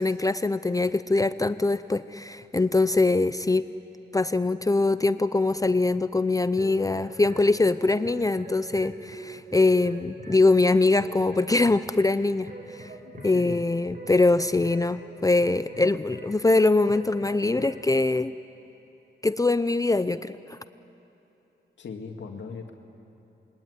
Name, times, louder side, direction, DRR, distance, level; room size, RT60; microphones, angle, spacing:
voice 1, 0.0-3.6 4.1-12.9 13.2-18.3 19.2-20.6, left 3 dB, 20° left, 13 dB, 0.6 m, -23 dB
sound 1, 6.2-17.9, right 2 dB, 50° right, 5.0 m, -43 dB
voice 2, 13.0-13.6 21.8-22.7, left 5 dB, 75° left, 2 dB, 2.2 m, -39 dB
27.0 x 22.5 x 9.6 m, 2.9 s
cardioid pair, 80°, 19 cm